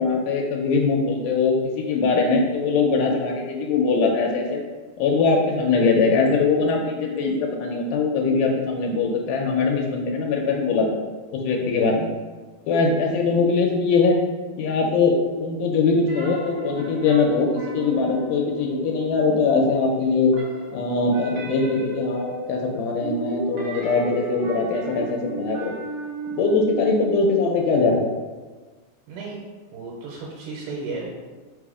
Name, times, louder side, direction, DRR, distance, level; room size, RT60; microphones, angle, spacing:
voice 1, 0.0-4.6 5.0-11.0 11.3-12.1 12.7-14.2 14.6-20.3 20.7-25.7 26.3-28.1, left 4 dB, 90° left, 0 dB, 2.1 m, -21 dB
sound 1, 16.1-19.8 20.1-27.9, right 2 dB, 65° right, 1.6 m, -34 dB
voice 2, 29.7-31.1, right 3 dB, 90° right, -3 dB, 2.2 m, -33 dB
4.9 x 2.0 x 4.7 m, 1.3 s
omnidirectional pair, 3.6 m